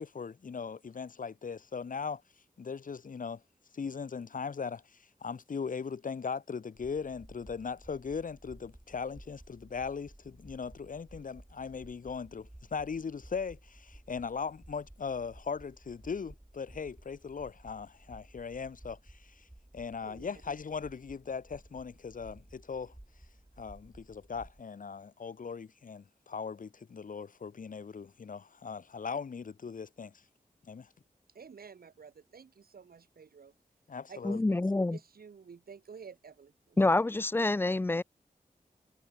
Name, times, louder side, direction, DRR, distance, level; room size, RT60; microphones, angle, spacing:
voice 1, 0.0-2.2 2.6-3.4 3.7-4.8 5.2-19.4 19.7-22.9 23.6-30.1 30.7-30.9 33.9-34.4, left 5 dB, 65° left, 1.0 m, -39 dB
sound 1, 6.7-24.6, right 1 dB, 15° right, 4.5 m, -55 dB
voice 2, 20.0-20.4 31.3-33.5 34.1-34.6 34.9-37.1, right 6 dB, 85° right, 2.0 m, -51 dB
voice 3, 34.2-35.0 36.8-38.0, left 2 dB, 15° left, 0.4 m, -27 dB
wide cardioid pair, 65°, 15 cm